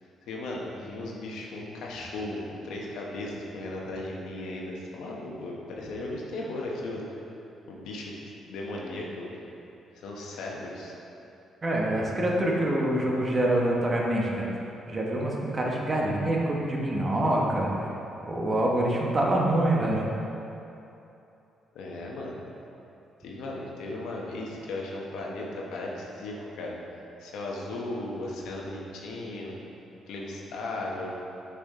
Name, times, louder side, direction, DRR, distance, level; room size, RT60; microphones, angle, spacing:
voice 1, 0.3-7.0 7.7-8.1 8.5-9.3 9.9-10.9 21.7-22.4 23.2-26.8 27.2-29.5 30.1-31.1, left 2 dB, 85° left, -2 dB, 1.0 m, -36 dB
voice 2, 11.6-14.5 14.9-17.7 18.3-20.1, right 1 dB, 30° right, -2 dB, 1.1 m, -25 dB
6.8 x 4.9 x 3.7 m, 2.9 s
cardioid pair, 90°, 0 cm